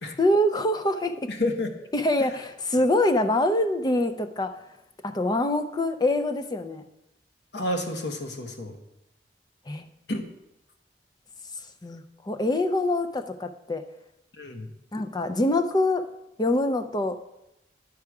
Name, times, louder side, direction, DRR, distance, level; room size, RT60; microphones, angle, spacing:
voice 1, 0.2-1.3 1.9-4.6 5.0-6.8 9.7-9.9 11.8-13.8 14.9-16.0 16.4-17.2, left 1 dB, 20° left, 7 dB, 0.5 m, -24 dB
voice 2, 1.3-1.7 7.5-8.8 10.1-10.2 14.4-14.7, left 1 dB, 70° left, 4 dB, 1.1 m, -30 dB
11.0 x 4.8 x 4.8 m, 0.89 s
head